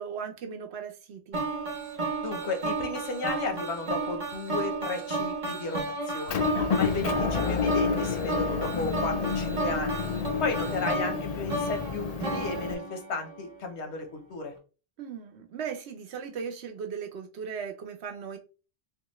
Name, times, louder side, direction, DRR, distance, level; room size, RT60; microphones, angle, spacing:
voice 1, 0.0-1.4 10.7-10.8 15.0-18.4, right 6 dB, 80° right, 0.9 m, -37 dB
sound 1, 1.3-13.5, right 3 dB, 45° right, 0.9 m, -33 dB
voice 2, 2.2-6.4 6.7-10.1 10.4-14.5, left 3 dB, 90° left, 1.1 m, -34 dB
Motor vehicle (road) / Engine, 6.3-12.7, left 6 dB, 60° left, 0.4 m, -29 dB
3.5 x 2.3 x 3.0 m
omnidirectional pair, 1.1 m